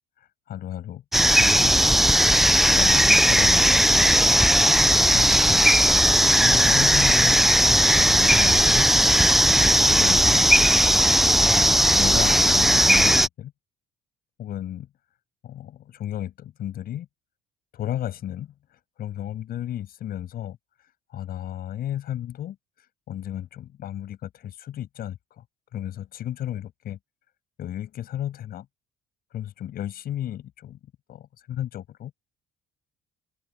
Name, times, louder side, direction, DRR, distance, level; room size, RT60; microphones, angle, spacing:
voice 1, 0.5-1.0 1.3-1.8 2.2-4.3 4.9-5.6 6.4-7.4 7.9-8.9 9.5-10.7 11.3-13.5 14.4-14.9 15.4-17.1 17.7-18.5 19.0-20.6 21.1-22.6 23.1-25.4 25.7-27.0 27.6-28.7 29.3-30.8 31.1-32.1, left 11 dB, 50° left, 7.6 m, -33 dB
sound 1, 1.1-13.3, equal, ahead, 0.5 m, -18 dB
cardioid pair, 165°, 19 cm